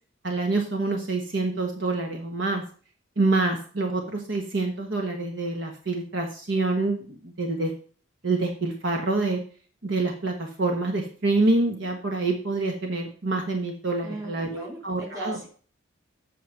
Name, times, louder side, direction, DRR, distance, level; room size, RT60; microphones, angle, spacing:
voice 1, 0.2-2.6 3.2-7.7 8.2-9.4 9.8-15.4, right 2 dB, 60° right, 3 dB, 1.3 m, -26 dB
voice 2, 14.0-15.5, right 2 dB, 15° right, 0 dB, 2.6 m, -38 dB
8.3 x 5.7 x 5.8 m, 0.42 s
head